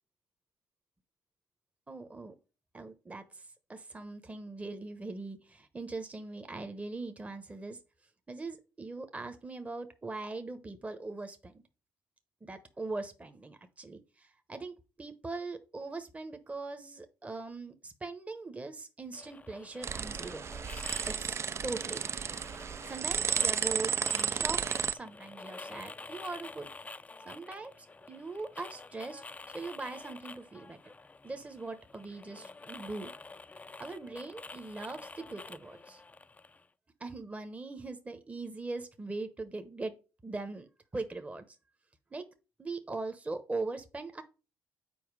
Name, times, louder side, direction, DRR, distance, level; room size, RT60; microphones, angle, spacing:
voice 1, 1.9-2.3 2.7-7.8 8.3-11.6 12.4-21.4 21.6-22.4 22.9-24.6 24.9-26.7 27.2-29.2 29.5-30.8 31.2-33.1 33.8-36.0 37.0-39.9 40.2-40.7 40.9-41.4 42.1-42.2 42.6-44.2, right 3 dB, 20° right, 8 dB, 0.9 m, -41 dB
sound 1, 19.1-36.7, left 3 dB, 20° left, 0.4 m, -49 dB
sound 2, 19.8-24.9, right 7 dB, 40° right, 0.4 m, -33 dB
7.1 x 4.5 x 4.7 m, 0.32 s
supercardioid pair, 70°, 7 cm